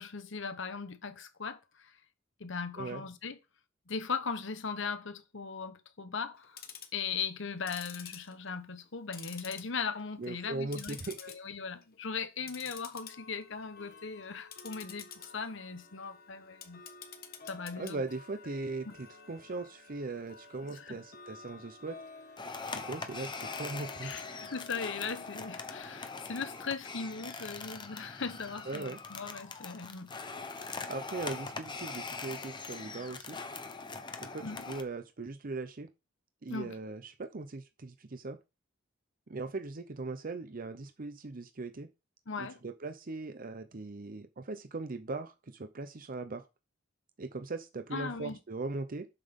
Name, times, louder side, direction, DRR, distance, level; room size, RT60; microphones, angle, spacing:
voice 1, 0.0-1.9 2.4-3.4 3.9-6.6 6.9-11.0 11.2-16.8 17.4-18.0 18.8-18.9 20.7-21.0 24.0-30.1 34.4-34.7 36.5-36.8 42.3-42.6 47.9-48.4, left 5 dB, 65° left, 1.1 m, -39 dB
Tick-tock, 6.4-7.0 7.6-8.9 9.1-10.0 10.3-11.3 11.7-12.0 12.4-25.8, left 6 dB, 50° left, 1.4 m, -50 dB
voice 2, 10.2-11.3 17.8-22.0 22.6-24.3 28.7-29.0 30.9-33.4 34.2-35.9 36.4-38.4 39.3-41.9 42.4-46.4 47.2-49.1, right 3 dB, 45° right, 0.7 m, -39 dB
sound 1, 22.4-34.8, left 4 dB, 25° left, 0.9 m, -42 dB
7.6 x 5.9 x 5.2 m
head